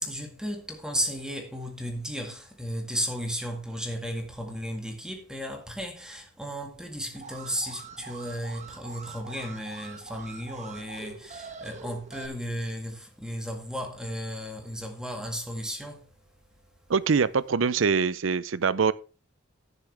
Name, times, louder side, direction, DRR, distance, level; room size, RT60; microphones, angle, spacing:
voice 1, 0.0-16.1, equal, 5° right, 1.8 m, -34 dB
Alarm, 7.1-12.3, right 5 dB, 40° right, 1.1 m, -44 dB
voice 2, 16.9-18.9, right 5 dB, 80° right, 0.5 m, -24 dB
15.0 x 6.8 x 3.4 m
head